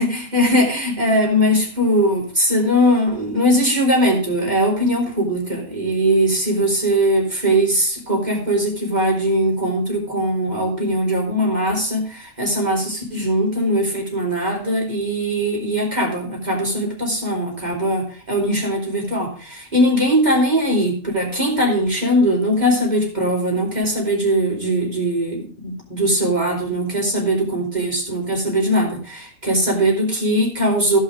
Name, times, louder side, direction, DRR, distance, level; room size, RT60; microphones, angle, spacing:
voice 1, 0.0-31.0, equal, 30° right, -1 dB, 3.8 m, -20 dB
16.0 x 5.7 x 5.0 m, 0.43 s
omnidirectional pair, 1.4 m